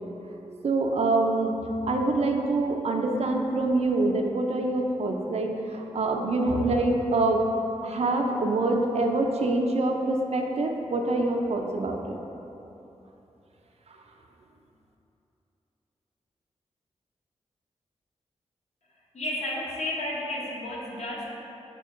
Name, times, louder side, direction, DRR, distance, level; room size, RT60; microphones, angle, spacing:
voice 1, 0.6-1.5 1.8-7.4 7.8-12.2, right 2 dB, 55° right, 2 dB, 0.4 m, -25 dB
voice 2, 19.1-21.3, left 1 dB, 60° left, -5 dB, 0.8 m, -32 dB
4.3 x 2.2 x 3.6 m, 2.9 s
cardioid pair, 40°, 13 cm